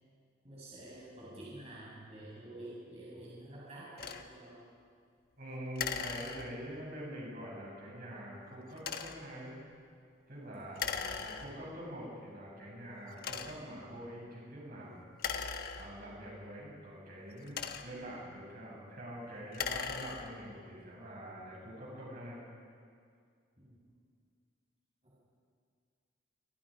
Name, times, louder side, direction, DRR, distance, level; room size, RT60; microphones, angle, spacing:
voice 1, 0.4-4.6 10.7-10.8 23.6-23.8 25.0-25.2, right 1 dB, 30° right, -7 dB, 6.8 m, -49 dB
sound 1, 4.0-4.3 5.8-6.8 8.8-9.3 10.8-11.8 12.4-12.5 13.2-13.8 15.1-16.3 17.2-18.1 19.4-20.5, left 6 dB, 50° left, 1.3 m, -39 dB
voice 2, 5.4-9.6 10.3-15.0 15.8-22.4, equal, 45° right, -4 dB, 7.9 m, -45 dB
28.5 x 24.5 x 5.2 m, 2.2 s
head